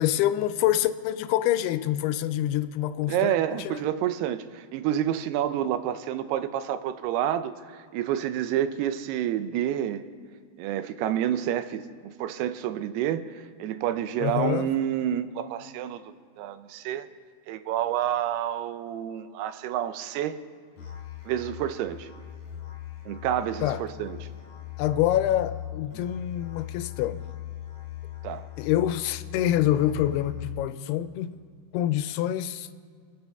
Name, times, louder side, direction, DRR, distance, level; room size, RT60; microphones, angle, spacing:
voice 1, 0.0-3.8 14.2-14.7 23.6-23.8 24.8-27.2 28.6-31.3 31.7-32.7, left 12 dB, 90° left, 2.6 m, -26 dB
voice 2, 3.1-10.0 10.6-16.0 16.4-17.1 17.5-20.4 21.3-22.1 23.1-24.2 28.2-28.5, right 11 dB, 85° right, 2.7 m, -29 dB
Musical instrument, 20.8-30.7, left 12 dB, 45° left, 3.3 m, -39 dB
27.5 x 9.8 x 3.5 m
omnidirectional pair, 4.5 m